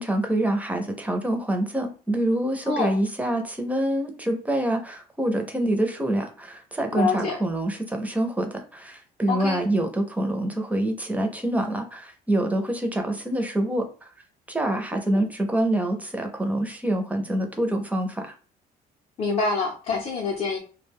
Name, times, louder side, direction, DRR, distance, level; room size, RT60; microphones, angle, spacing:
voice 1, 0.0-13.8 14.5-18.3, right 1 dB, 10° right, 4 dB, 0.5 m, -26 dB
voice 2, 2.7-3.0 6.9-7.4 9.3-9.6 15.1-15.3 19.2-20.6, left 4 dB, 40° left, -1 dB, 0.6 m, -26 dB
2.3 x 2.1 x 3.5 m, 0.38 s
cardioid pair, 110°, 17 cm